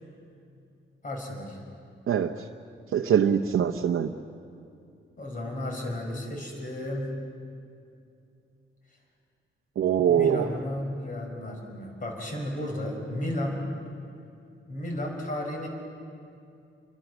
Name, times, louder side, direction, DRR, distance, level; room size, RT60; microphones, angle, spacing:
voice 1, 1.0-1.6 5.2-7.2 10.1-13.7 14.7-15.7, left 1 dB, 40° left, 1 dB, 5.2 m, -33 dB
voice 2, 2.9-4.1 9.8-10.5, right 8 dB, 80° right, 2 dB, 0.8 m, -23 dB
29.0 x 23.5 x 6.2 m, 2.5 s
wide cardioid pair, 160°, 21 cm